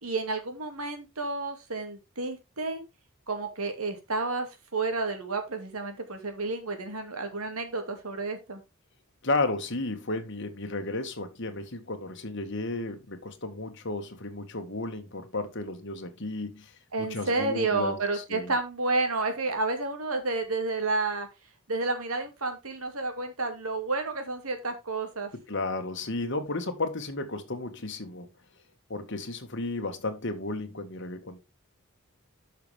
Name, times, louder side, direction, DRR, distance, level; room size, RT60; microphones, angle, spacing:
voice 1, 0.0-2.8 3.3-8.6 16.9-21.3 21.7-25.3, right 3 dB, 85° right, 2.5 m, -30 dB
voice 2, 9.2-16.7 17.0-18.5 25.3-28.3 28.9-31.4, left 2 dB, 55° left, 1.7 m, -33 dB
12.0 x 5.9 x 3.5 m
head